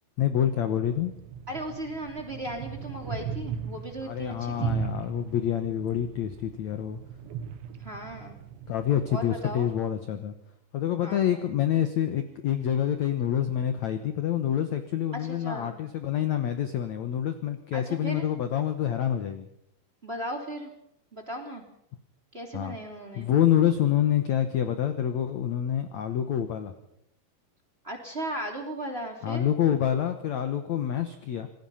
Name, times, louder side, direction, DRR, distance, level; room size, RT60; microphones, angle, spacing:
voice 1, 0.2-1.1 4.0-7.0 8.7-10.4 10.7-19.5 22.5-22.8 23.2-26.7 29.2-31.5, left 10 dB, 75° left, 8 dB, 1.6 m, -27 dB
sound 1, 0.8-9.8, right 7 dB, 85° right, 3.8 m, -37 dB
voice 2, 1.5-4.8 7.8-8.4 9.1-9.7 11.0-11.4 15.1-15.7 17.7-18.3 20.0-20.7 21.1-21.6 22.3-23.3 27.8-29.5, right 1 dB, 15° right, 3 dB, 2.7 m, -36 dB
27.0 x 20.0 x 5.7 m, 0.76 s
omnidirectional pair, 5.1 m